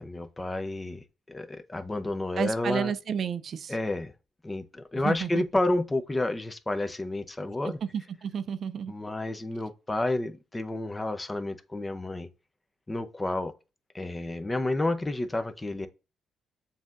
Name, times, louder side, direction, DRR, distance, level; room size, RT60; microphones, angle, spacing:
voice 1, 0.0-2.9 3.7-4.1 4.4-7.8 8.9-12.3 12.9-13.5 13.9-15.9, left 2 dB, 15° left, 0.5 m, -30 dB
voice 2, 2.4-3.7 5.0-5.4 7.8-8.9, right 7 dB, 55° right, 0.4 m, -31 dB
7.1 x 2.7 x 2.4 m
cardioid pair, 90°, 0 cm